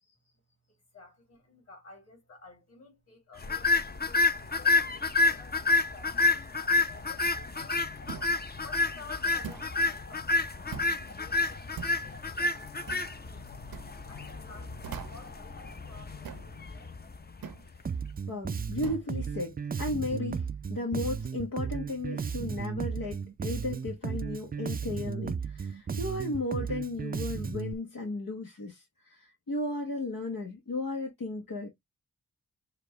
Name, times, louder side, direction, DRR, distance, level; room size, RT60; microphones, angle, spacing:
voice 1, 0.7-6.2 6.9-7.9 8.6-13.6 14.1-16.9, left 3 dB, 45° left, 3.4 m, -53 dB
sound 1, 3.4-17.8, left 3 dB, 30° left, 0.7 m, -29 dB
sound 2, 8.1-8.4 9.4-9.7 10.7-11.0 11.8-12.0 12.9-13.1 13.7-13.9 14.8-15.3 16.2-16.5 17.4-17.7 18.8-19.1, right 7 dB, 90° right, 0.8 m, -41 dB
Bass guitar, 17.8-27.7, right 6 dB, 25° right, 0.3 m, -35 dB
voice 2, 18.3-31.7, left 2 dB, 75° left, 1.3 m, -35 dB
6.5 x 2.5 x 3.3 m
cardioid pair, 60°, 34 cm